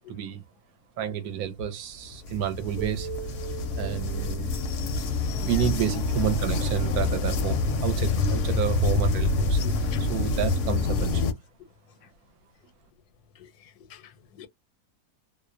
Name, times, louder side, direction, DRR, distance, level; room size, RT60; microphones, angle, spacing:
voice 1, 0.1-0.4 1.0-3.1 3.8-4.5 5.3-11.3, right 9 dB, 75° right, 1.0 m, -30 dB
sound 1, 2.1-11.3, left 3 dB, 65° left, 0.8 m, -27 dB
sound 2, 2.8-6.9, right 11 dB, 50° right, 0.6 m, -42 dB
voice 2, 5.4-5.8 9.6-10.0 11.6-12.1 13.3-14.5, left 8 dB, 85° left, 1.1 m, -46 dB
2.6 x 2.0 x 2.4 m
omnidirectional pair, 1.6 m